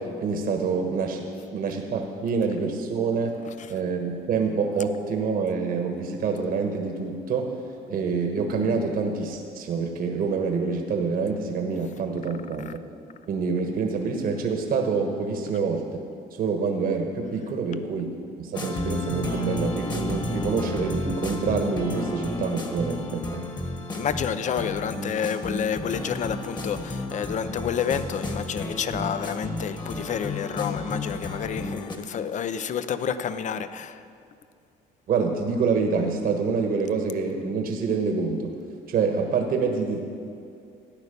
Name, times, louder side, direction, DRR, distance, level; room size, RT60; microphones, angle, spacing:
voice 1, 0.0-3.4 3.7-7.6 7.9-12.9 13.3-15.8 16.3-23.5 35.1-38.6 38.9-40.0, right 5 dB, 60° right, 3 dB, 1.3 m, -26 dB
sound 1, 18.5-32.0, left 2 dB, 25° left, 1.5 m, -32 dB
voice 2, 23.9-34.0, left 7 dB, 45° left, 12 dB, 0.7 m, -29 dB
13.5 x 9.4 x 6.8 m, 2.4 s
cardioid pair, 110°, 17 cm